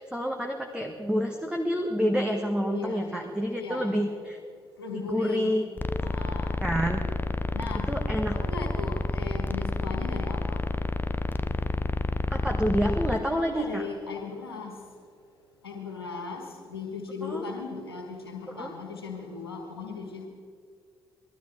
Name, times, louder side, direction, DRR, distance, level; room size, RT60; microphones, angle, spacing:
voice 1, 0.0-4.4 5.1-5.6 6.6-7.0 7.9-8.4 12.3-13.9 17.2-17.6 18.5-18.7, equal, 5° right, 2 dB, 1.4 m, -28 dB
voice 2, 2.7-4.1 4.8-5.6 6.0-6.6 7.5-7.9 8.3-10.6 13.3-14.8 15.6-20.3, left 4 dB, 85° left, 1 dB, 1.5 m, -37 dB
sound 1, 5.8-13.2, left 2 dB, 15° left, 0.7 m, -29 dB
20.5 x 12.5 x 4.4 m, 2.2 s
figure-of-eight pair, 40°, 12 cm